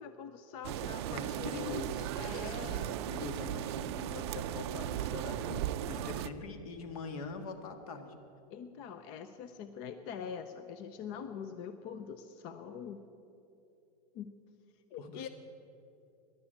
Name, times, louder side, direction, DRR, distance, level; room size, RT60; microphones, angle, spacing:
voice 1, 0.0-2.9 8.5-13.0 14.1-14.3 14.9-15.3, left 7 dB, 25° left, 9 dB, 0.4 m, -44 dB
sound 1, 0.6-6.3, right 12 dB, 40° right, 0.5 m, -37 dB
voice 2, 1.1-8.1 15.0-15.3, left 3 dB, 60° left, 7 dB, 1.7 m, -43 dB
13.0 x 11.0 x 8.7 m, 2.8 s
supercardioid pair, 170°, 21 cm